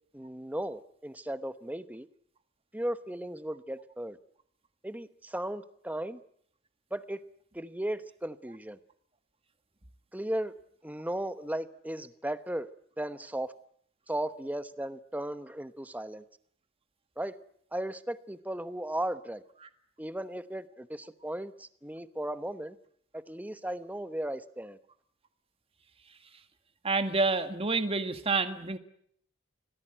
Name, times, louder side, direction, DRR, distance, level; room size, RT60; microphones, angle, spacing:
voice 1, 0.1-2.1 2.7-4.2 4.8-6.2 6.9-7.2 7.5-8.8 10.1-10.5 10.8-12.7 13.0-13.5 14.1-16.2 17.2-17.4 17.7-19.4 20.0-22.8 23.1-24.8, right 1 dB, 5° right, 13 dB, 0.9 m, -36 dB
voice 2, 26.8-28.8, right 3 dB, 25° right, 9 dB, 1.7 m, -28 dB
26.0 x 18.5 x 9.0 m, 0.67 s
head